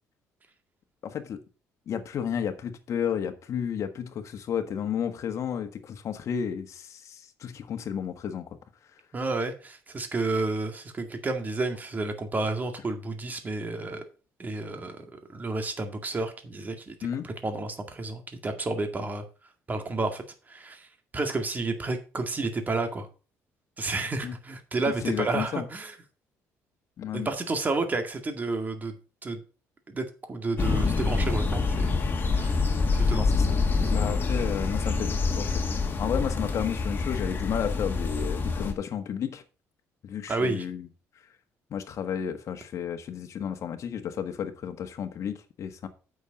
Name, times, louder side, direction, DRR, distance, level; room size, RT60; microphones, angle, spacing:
voice 1, 1.0-1.4 1.9-8.5 17.0-17.3 24.2-24.4 25.0-25.7 27.0-27.3 33.1-33.5 33.9-39.4 40.0-40.9 41.7-45.9, left 8 dB, 55° left, 1.4 m, -32 dB
voice 2, 9.1-14.0 14.4-15.0 15.3-16.9 17.2-19.2 19.7-20.9 21.1-23.1 23.8-26.0 27.1-28.9 29.2-29.4 29.9-31.9 32.3-32.6 33.1-33.3 40.3-40.7, right 3 dB, 30° right, 2.0 m, -31 dB
sound 1, 30.6-38.7, left 4 dB, 35° left, 1.8 m, -26 dB
8.2 x 6.4 x 5.2 m
cardioid pair, 95°, 6 cm